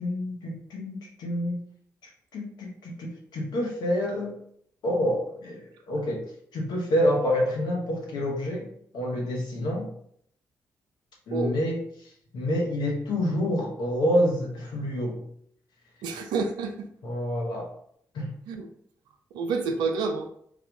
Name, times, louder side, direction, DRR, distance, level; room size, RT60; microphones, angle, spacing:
voice 1, 0.0-1.6 2.0-4.3 4.8-6.2 6.5-8.7 8.9-9.9 11.3-15.2 17.0-17.7 18.1-18.3, equal, 70° left, 1 dB, 1.0 m, -28 dB
voice 2, 16.0-16.9 18.5-18.7 19.3-20.3, right 4 dB, 80° right, 6 dB, 0.4 m, -28 dB
3.5 x 2.3 x 3.4 m, 0.66 s
hypercardioid pair, 40°, 7 cm